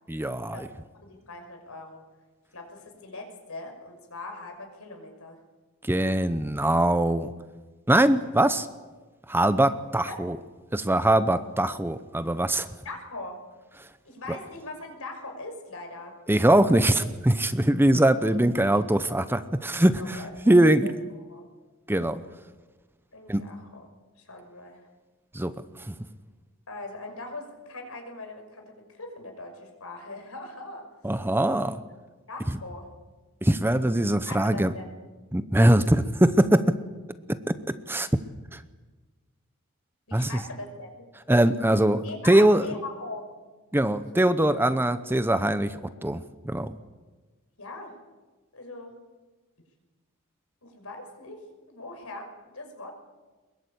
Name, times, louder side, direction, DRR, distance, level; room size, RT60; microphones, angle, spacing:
voice 1, 0.1-0.7 5.9-7.3 7.9-8.7 9.3-10.4 10.7-12.7 16.3-20.2 20.5-20.9 21.9-22.2 23.3-23.4 25.3-25.5 25.9-26.0 31.0-31.8 33.4-34.7 35.3-36.7 37.5-38.1 38.5-38.6 40.1-40.3 41.3-42.7 43.7-46.7, right 1 dB, 10° right, 12 dB, 0.8 m, -22 dB
voice 2, 1.0-2.0 2.5-5.4 10.0-10.2 12.8-13.4 14.0-16.1 19.7-20.6 20.8-21.0 21.3-21.5 23.1-23.9 24.2-24.8 26.7-30.9 32.3-32.9 34.2-34.9 40.1-41.1 41.7-43.3 47.6-47.9 48.5-49.0 50.6-52.9, left 2 dB, 70° left, 4 dB, 6.0 m, -41 dB
23.0 x 22.0 x 8.6 m, 1.3 s
head